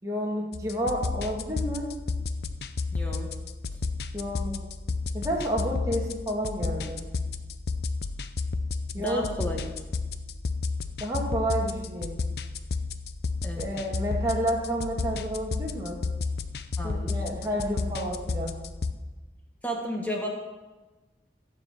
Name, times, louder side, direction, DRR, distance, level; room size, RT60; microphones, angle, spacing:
voice 1, 0.0-1.9 4.1-4.6 5.1-7.0 8.9-9.3 11.0-12.2 13.6-16.0 16.8-18.6, equal, 20° right, -3 dB, 2.1 m, -30 dB
sound 1, 0.5-18.9, left 3 dB, 65° left, 0.6 m, -32 dB
voice 2, 2.9-3.3 9.0-9.7 13.4-13.6 16.8-17.2 19.6-20.3, equal, 10° left, 1 dB, 1.6 m, -32 dB
15.5 x 5.9 x 7.1 m, 1.2 s
head